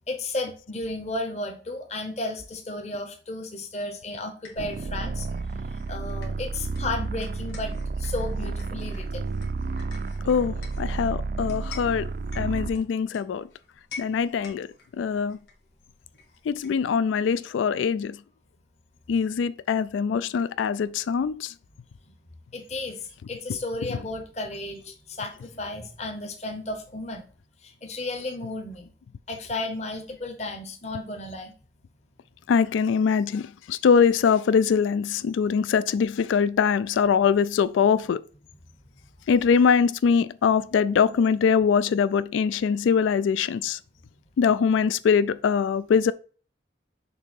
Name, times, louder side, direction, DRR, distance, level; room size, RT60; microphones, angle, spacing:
voice 1, 0.1-5.3 5.9-9.3 22.1-22.2 22.5-27.2 27.6-28.9 29.3-31.6, left 2 dB, 35° left, 0.9 m, -33 dB
sound 1, 4.4-16.9, left 5 dB, 60° left, 1.9 m, -49 dB
sound 2, 4.6-12.8, right 3 dB, 50° right, 0.4 m, -31 dB
voice 2, 10.3-12.1 12.4-13.5 14.0-14.7 15.0-15.4 16.5-18.2 19.1-21.5 32.5-38.2 39.3-43.8 44.4-46.1, left 6 dB, 90° left, 0.3 m, -23 dB
6.7 x 2.8 x 5.2 m
head